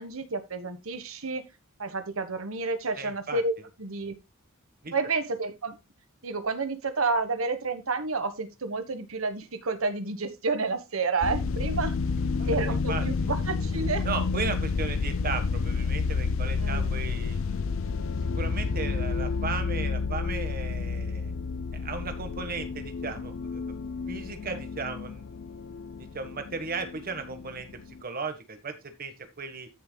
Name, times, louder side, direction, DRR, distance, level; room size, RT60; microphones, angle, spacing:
voice 1, 0.0-1.4 1.8-3.5 3.8-4.1 4.9-5.8 6.2-12.0 12.5-14.1 16.6-17.0 24.4-24.6, right 3 dB, 75° right, 10 dB, 1.3 m, -30 dB
voice 2, 3.0-3.4 4.8-4.9 12.4-12.5 12.9-13.0 14.0-17.6 18.3-21.3 21.7-23.6 24.1-25.3 26.0-27.7 28.0-29.7, right 4 dB, 45° right, 8 dB, 1.4 m, -36 dB
sound 1, 11.2-28.0, left 4 dB, 65° left, 0.4 m, -30 dB
13.5 x 6.8 x 2.3 m, 0.24 s
head